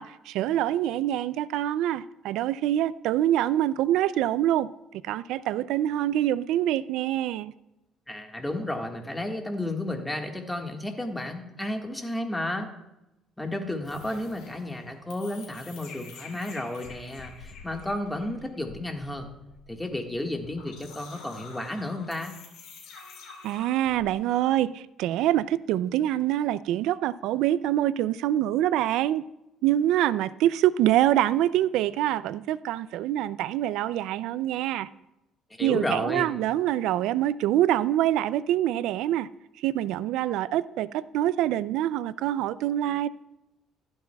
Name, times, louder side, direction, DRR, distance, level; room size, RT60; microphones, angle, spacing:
voice 1, 0.0-4.7 5.0-7.5 23.4-29.2 29.6-34.9 35.6-39.3 39.6-43.1, right 12 dB, 80° right, 16 dB, 0.3 m, -25 dB
voice 2, 8.1-12.7 13.4-19.3 19.7-22.4 35.6-36.3, left 1 dB, 10° left, 3 dB, 1.6 m, -32 dB
sound 1, 13.8-24.1, left 5 dB, 75° left, 4.1 m, -48 dB
15.0 x 12.0 x 2.3 m, 0.91 s
cardioid pair, 105°, 0 cm